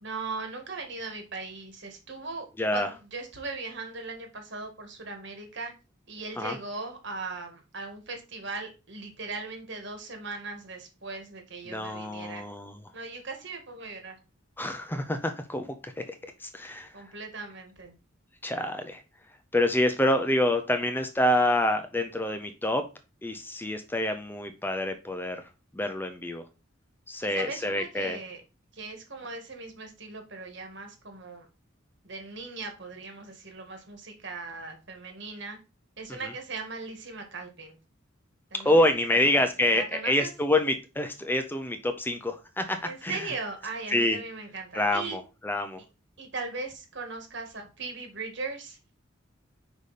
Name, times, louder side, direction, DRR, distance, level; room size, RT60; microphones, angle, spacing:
voice 1, 0.0-5.7 6.1-12.5 12.9-14.2 16.9-17.9 27.2-28.4 28.7-31.5 32.0-35.6 36.0-37.8 38.5-38.8 39.1-40.3 42.8-45.2 46.2-48.8, right 3 dB, 60° right, 4 dB, 1.7 m, -39 dB
voice 2, 2.6-2.9 6.4-6.6 11.7-12.8 14.6-16.0 16.4-16.9 18.4-19.0 19.5-22.9 23.2-25.4 25.7-26.4 27.1-28.2 36.1-36.2 38.6-43.3 43.9-44.2 44.7-45.8, left 1 dB, 10° left, 7 dB, 0.5 m, -27 dB
5.2 x 5.0 x 4.1 m, 0.29 s
head